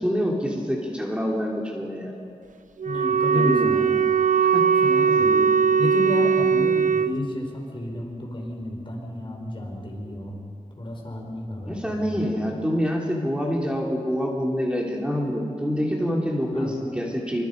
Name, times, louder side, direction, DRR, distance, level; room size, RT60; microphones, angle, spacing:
voice 1, 0.0-2.1 3.3-3.7 4.5-4.7 5.2-5.5 11.6-17.5, equal, 10° right, -2 dB, 3.3 m, -26 dB
Wind instrument woodwind instrument, 2.8-7.2, right 6 dB, 85° right, 0.6 m, -20 dB
voice 2, 2.9-4.0 4.8-5.4 5.8-10.4 10.8-12.4 16.5-16.7, left 1 dB, 40° left, 0 dB, 5.3 m, -31 dB
27.5 x 25.5 x 5.4 m, 2.4 s
wide cardioid pair, 95°, 13 cm